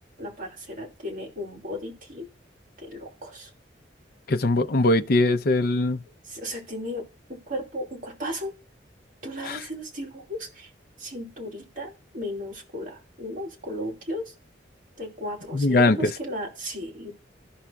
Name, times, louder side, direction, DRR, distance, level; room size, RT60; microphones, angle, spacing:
voice 1, 0.2-2.3 2.8-3.5 6.2-8.5 9.2-10.7 11.0-14.3 15.0-17.1, left 1 dB, 50° right, 2.9 m, -35 dB
voice 2, 4.3-6.0 9.4-9.6 15.5-16.1, left 2 dB, 55° left, 0.6 m, -21 dB
15.0 x 5.6 x 2.3 m
head